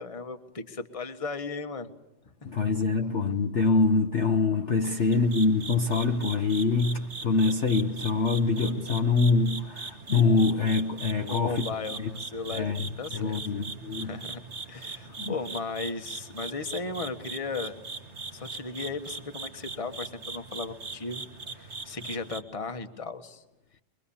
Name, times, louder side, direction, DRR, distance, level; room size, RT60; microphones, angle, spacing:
voice 1, 0.0-1.9 2.2-2.5 4.8-5.2 11.2-13.4 14.0-14.4 14.6-17.8 18.3-21.2 21.5-23.4, left 4 dB, 20° left, 1.3 m, -36 dB
voice 2, 2.4-11.7 12.0-12.1 12.5-12.8 13.1-14.2 15.2-15.4, left 4 dB, 45° left, 1.1 m, -25 dB
sound 1, 5.1-22.4, right 4 dB, 40° right, 1.9 m, -40 dB
24.0 x 24.0 x 7.2 m
omnidirectional pair, 1.9 m